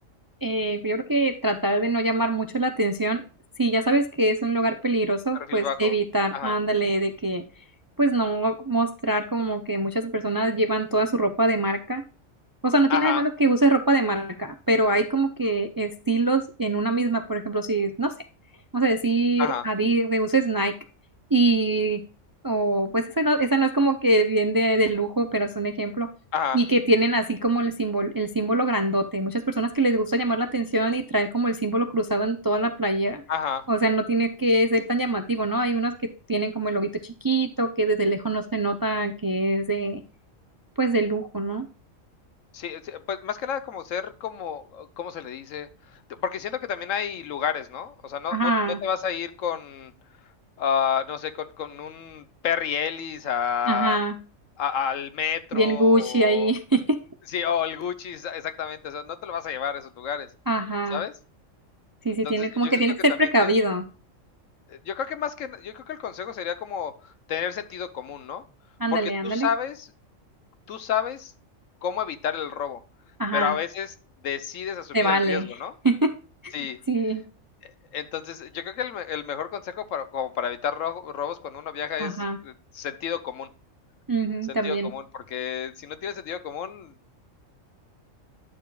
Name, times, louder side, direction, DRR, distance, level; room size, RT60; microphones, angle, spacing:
voice 1, 0.4-3.2 3.6-7.4 8.0-12.0 12.6-18.1 18.7-20.7 21.3-22.0 22.4-26.1 26.5-33.2 33.7-35.9 36.3-40.0 40.8-41.7 48.3-48.8 53.7-54.1 55.5-57.0 60.5-61.0 62.0-63.8 68.8-69.5 73.2-73.6 74.9-75.5 75.8-76.1 76.4-76.5 76.9-77.2 82.0-82.4 84.1-84.9, right 2 dB, 30° right, 0.4 m, -23 dB
voice 2, 5.5-5.9 6.3-6.6 12.9-13.2 19.4-19.6 26.3-26.6 33.3-33.7 42.5-45.7 46.1-48.5 48.8-49.9 50.6-54.0 54.6-56.5 57.3-60.3 60.9-61.1 62.2-62.8 63.4-63.5 64.7-68.4 68.9-69.9 70.7-71.3 71.8-72.8 73.3-73.9 74.2-75.7 76.5-76.8 77.6-83.5 84.6-86.9, left 8 dB, 80° left, 1.2 m, -30 dB
10.5 x 6.9 x 2.3 m
omnidirectional pair, 1.3 m